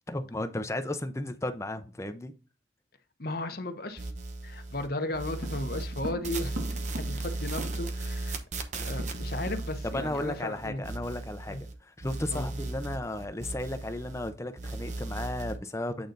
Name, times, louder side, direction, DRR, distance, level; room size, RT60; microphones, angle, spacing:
voice 1, 0.1-2.3 7.1-7.2 9.8-16.1, left 1 dB, 15° left, 0.6 m, -34 dB
voice 2, 3.2-4.1 4.4-6.6 7.0-8.4 8.8-10.8 11.5-11.6 12.3-12.5, left 1 dB, 50° left, 1.0 m, -35 dB
sound 1, 4.0-4.9 5.1-11.7 12.0-14.3 14.6-15.6, right 2 dB, 40° right, 0.9 m, -36 dB
sound 2, 5.4-8.1 8.4-8.5 8.7-9.7 10.0-10.2 10.6-10.8, right 1 dB, 85° right, 1.2 m, -41 dB
8.7 x 3.9 x 3.9 m
head